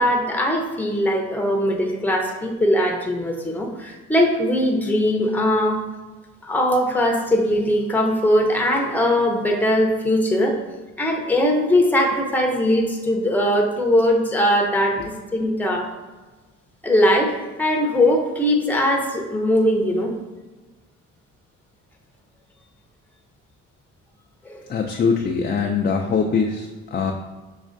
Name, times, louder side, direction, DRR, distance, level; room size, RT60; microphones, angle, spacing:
voice 1, 0.0-5.8 6.4-10.6 11.0-15.9 16.8-20.1 24.4-24.7, left 1 dB, 5° left, 1 dB, 0.7 m, -20 dB
voice 2, 24.7-27.1, left 5 dB, 30° left, 2 dB, 0.4 m, -22 dB
6.2 x 3.2 x 2.6 m, 1.2 s
cardioid pair, 90°, 30 cm